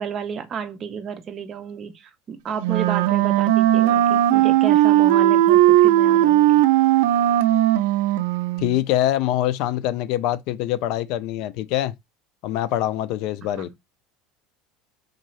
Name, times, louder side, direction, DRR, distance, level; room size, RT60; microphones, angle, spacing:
voice 1, 0.0-6.6 13.6-13.7, right 7 dB, 30° right, 0.6 m, -32 dB
Wind instrument woodwind instrument, 2.6-8.8, right 14 dB, 90° right, 0.4 m, -17 dB
voice 2, 8.6-11.9 12.4-13.7, left 13 dB, 55° left, 0.4 m, -24 dB
3.8 x 2.7 x 3.1 m
cardioid pair, 160°, 0 cm